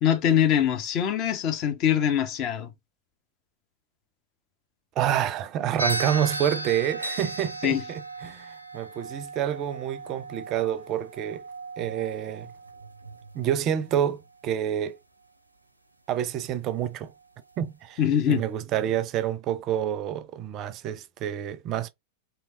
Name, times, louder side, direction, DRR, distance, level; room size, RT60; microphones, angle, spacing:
voice 1, 0.0-2.7 7.6-7.8 18.0-18.4, left 9 dB, 40° left, 0.7 m, -23 dB
voice 2, 5.0-11.4 11.8-12.5 13.3-15.0 16.1-17.1 17.6-18.0 18.3-21.9, right 10 dB, 35° right, 0.5 m, -28 dB
sound 1, 5.8-14.1, right 2 dB, 85° right, 0.5 m, -36 dB
3.1 x 2.8 x 2.5 m
figure-of-eight pair, 90°, 0 cm